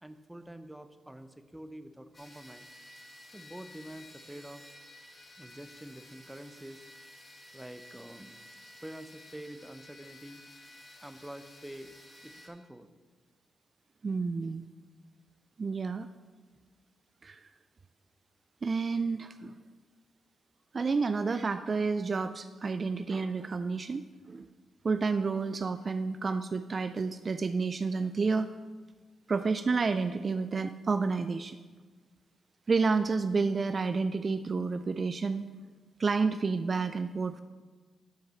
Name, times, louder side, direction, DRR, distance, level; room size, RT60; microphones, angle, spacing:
voice 1, 0.0-2.7 3.3-4.6 5.4-6.8 7.5-8.4 8.8-10.4 11.0-11.9 12.2-12.9, right 1 dB, 10° right, 10 dB, 0.7 m, -46 dB
sound 1, 2.1-12.5, left 1 dB, 25° left, 1.7 m, -53 dB
voice 2, 14.0-14.7 15.6-16.1 17.2-17.4 18.6-19.5 20.7-24.0 24.3-24.5 24.8-28.5 29.3-31.6 32.7-35.4 36.0-37.4, right 4 dB, 45° right, 10 dB, 0.3 m, -30 dB
9.3 x 4.7 x 5.5 m, 1.4 s
supercardioid pair, 45°, 0 cm